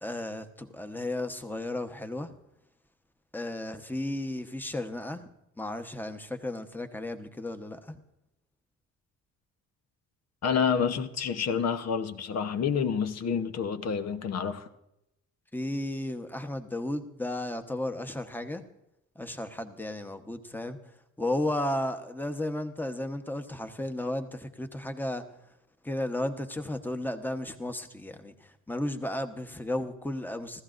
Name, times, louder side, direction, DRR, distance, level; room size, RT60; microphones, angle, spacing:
voice 1, 0.0-2.3 3.3-5.3 5.6-8.0 15.5-18.6 19.1-20.8 21.2-25.2 25.8-30.6, left 1 dB, 5° left, 1.1 m, -34 dB
voice 2, 10.4-14.7, left 6 dB, 60° left, 1.0 m, -28 dB
27.0 x 15.0 x 2.6 m
cardioid pair, 90°, 30 cm